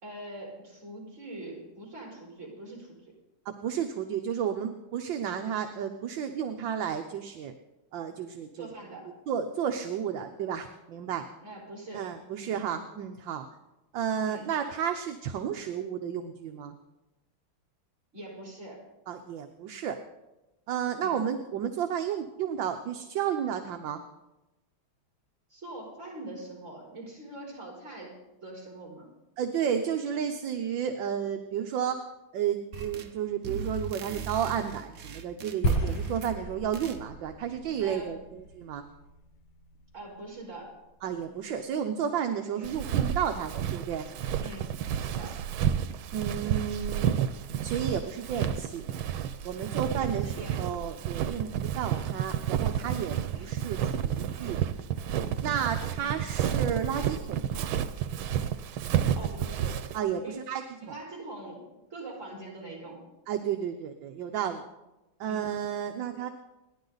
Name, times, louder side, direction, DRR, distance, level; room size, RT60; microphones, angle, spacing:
voice 1, 0.0-3.1 8.5-9.1 11.4-12.1 12.4-12.6 14.2-14.5 18.1-18.8 21.0-21.2 25.5-29.1 29.6-29.7 37.8-38.2 39.9-40.8 42.5-42.7 44.4-45.4 50.0-50.8 53.3-53.5 56.0-56.2 59.1-59.8 60.1-60.4 60.8-61.6 61.9-63.1 65.3-65.4, right 1 dB, 35° right, -2 dB, 5.1 m, -43 dB
voice 2, 3.5-7.5 7.9-8.7 9.3-11.3 11.9-13.4 13.9-16.7 19.1-20.0 20.7-24.0 29.4-32.0 32.3-38.8 41.0-44.1 46.1-47.2 47.6-48.9 49.4-54.6 55.4-57.7 59.9-61.0 63.3-64.6 65.2-66.3, right 8 dB, 70° right, 6 dB, 1.6 m, -32 dB
sound 1, 32.7-33.2 33.4-36.4 36.7-37.0, right 6 dB, 50° right, 1.2 m, -39 dB
sound 2, 35.6-40.0, right 1 dB, 80° left, 2.7 m, -33 dB
Walk footsteps, 42.6-60.0, right 9 dB, 90° right, 1.6 m, -30 dB
29.0 x 11.0 x 4.0 m, 1.0 s
omnidirectional pair, 2.2 m